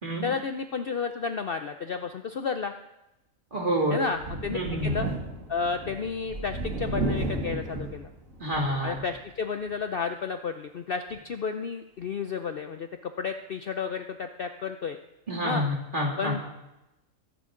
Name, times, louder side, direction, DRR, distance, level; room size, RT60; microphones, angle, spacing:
voice 1, 0.2-2.7 3.9-5.1 5.5-8.1 8.8-15.0 15.4-15.7 16.2-16.4, left 5 dB, 55° left, 8 dB, 0.7 m, -32 dB
voice 2, 3.5-4.0 4.5-4.9 8.4-8.9 15.3-16.3, equal, 35° right, 0 dB, 2.9 m, -28 dB
Thunder, 4.1-9.2 9.7-9.8 11.1-11.2, right 2 dB, 70° right, 2.8 m, -33 dB
23.0 x 11.0 x 3.8 m, 0.94 s
omnidirectional pair, 1.4 m